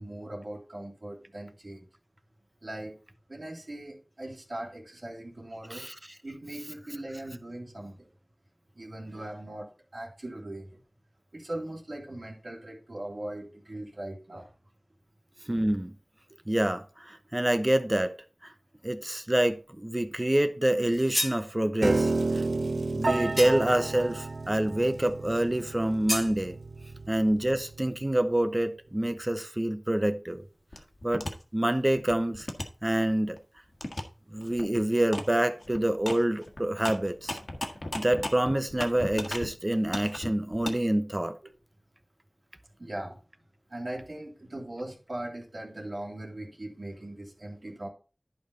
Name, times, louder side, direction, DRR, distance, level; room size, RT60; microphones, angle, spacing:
voice 1, 0.0-1.9 2.6-3.0 3.3-5.9 6.2-8.1 8.7-10.8 11.3-14.5 41.4-41.5 42.8-43.2 43.7-47.9, right 1 dB, 70° right, 2.6 m, -40 dB
voice 2, 15.5-16.0 16.5-18.2 18.4-18.5 18.8-22.4 22.9-26.6 27.1-30.4 31.0-31.3 31.5-32.5 32.8-33.4 34.3-37.4 37.9-41.4, right 1 dB, 25° right, 0.9 m, -27 dB
sound 1, 20.8-21.5 23.4-23.8 26.1-26.3, left 1 dB, 20° left, 1.4 m, -31 dB
Piano, 21.8-28.0, right 3 dB, 85° right, 0.5 m, -31 dB
sound 2, 30.7-31.3 31.8-33.4 33.8-34.0 34.4-34.6 35.1-35.3 35.6-39.5 39.9-40.7, left 1 dB, 70° left, 1.5 m, -36 dB
11.0 x 5.3 x 3.9 m
wide cardioid pair, 50°, 0 cm